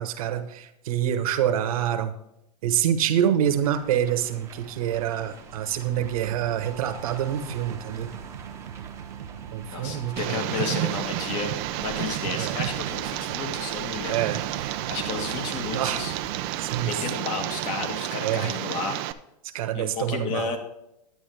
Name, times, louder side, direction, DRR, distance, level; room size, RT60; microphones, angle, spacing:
voice 1, 0.0-2.1 2.6-8.1 9.5-10.5 12.4-12.6 14.1-14.4 15.7-16.0 16.6-17.0 18.2-18.5 19.4-20.5, right 10 dB, 60° right, 9 dB, 1.3 m, -26 dB
sound 1, 3.4-17.0, right 4 dB, 15° right, 1.1 m, -45 dB
sound 2, 5.6-18.6, right 10 dB, 85° right, 0.7 m, -43 dB
voice 2, 9.6-11.5 11.8-16.1 16.8-19.0 19.7-20.6, left 5 dB, 35° left, 4 dB, 2.1 m, -32 dB
Tick, 10.2-19.1, right 15 dB, 40° right, 0.6 m, -31 dB
10.5 x 9.3 x 3.4 m, 0.84 s
hypercardioid pair, 140°, 21 cm